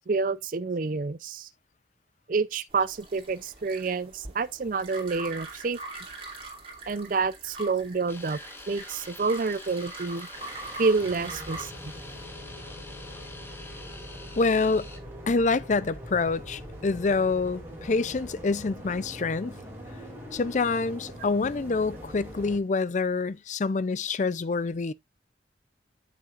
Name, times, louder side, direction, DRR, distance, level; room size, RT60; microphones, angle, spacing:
voice 1, 0.1-1.5 2.3-5.8 6.9-8.4 8.7-10.3 10.8-11.9, right 4 dB, 50° right, 0.5 m, -28 dB
sound 1, 2.7-11.7, right 2 dB, 30° right, 2.6 m, -43 dB
sound 2, 8.1-15.0, left 2 dB, 15° left, 1.2 m, -46 dB
sound 3, 10.3-22.6, equal, 15° right, 4.5 m, -42 dB
voice 2, 14.4-14.9 15.3-19.6 20.3-24.9, left 4 dB, 40° left, 0.4 m, -26 dB
8.7 x 7.1 x 2.4 m
head